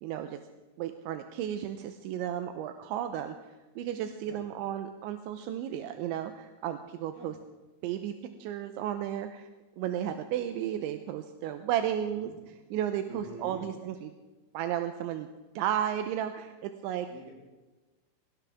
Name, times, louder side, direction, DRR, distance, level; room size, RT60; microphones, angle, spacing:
voice 1, 0.0-0.4 0.8-3.4 3.8-7.3 7.8-8.1 8.4-9.5 9.8-12.3 12.7-14.1 14.5-15.3 15.6-17.1, right 10 dB, 80° right, 8 dB, 2.8 m, -33 dB
voice 2, 11.8-12.4 13.1-13.7 17.0-17.3, right 3 dB, 50° right, -1 dB, 4.5 m, -48 dB
19.5 x 18.0 x 3.5 m, 1.2 s
omnidirectional pair, 5.7 m